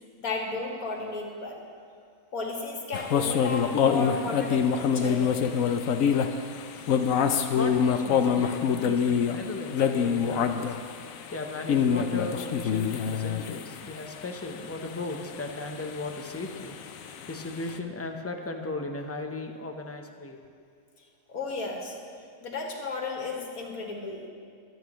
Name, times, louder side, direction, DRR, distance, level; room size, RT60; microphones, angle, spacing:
voice 1, 0.2-1.6 2.3-5.4 21.0-22.0 22.4-24.3, left 3 dB, 90° left, 0 dB, 2.0 m, -34 dB
sound 1, 2.9-17.7, left 7 dB, 75° left, 1.1 m, -26 dB
voice 2, 7.5-10.8 11.3-20.4, left 2 dB, 15° left, 3 dB, 0.6 m, -37 dB
23.5 x 9.2 x 3.1 m, 2.2 s
omnidirectional pair, 1.5 m